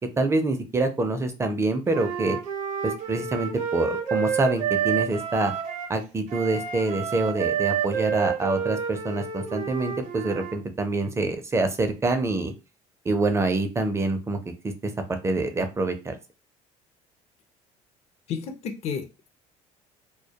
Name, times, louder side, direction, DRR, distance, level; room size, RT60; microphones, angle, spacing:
voice 1, 0.2-2.4 2.8-5.5 5.9-12.5 13.1-16.2, right 2 dB, 20° right, 7 dB, 0.4 m, -26 dB
Wind instrument woodwind instrument, 1.9-6.0 6.3-10.5, right 8 dB, 55° right, 0.7 m, -29 dB
voice 2, 18.3-19.3, left 6 dB, 50° left, 5 dB, 0.5 m, -32 dB
2.1 x 2.1 x 2.8 m, 0.30 s
cardioid pair, 105°, 14 cm